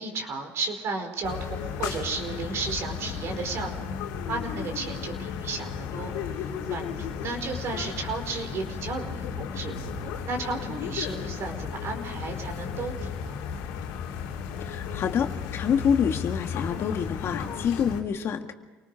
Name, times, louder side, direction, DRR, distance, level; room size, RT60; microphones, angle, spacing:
voice 1, 0.0-3.9 4.3-6.1 6.7-9.7 10.2-13.4, right 3 dB, 60° right, 5 dB, 4.8 m, -33 dB
sound 1, 1.2-18.0, left 7 dB, 85° left, 2.9 m, -34 dB
voice 2, 14.7-18.5, left 7 dB, 55° left, 5 dB, 2.0 m, -27 dB
28.5 x 19.5 x 4.8 m, 1.3 s
supercardioid pair, 85°, 5 cm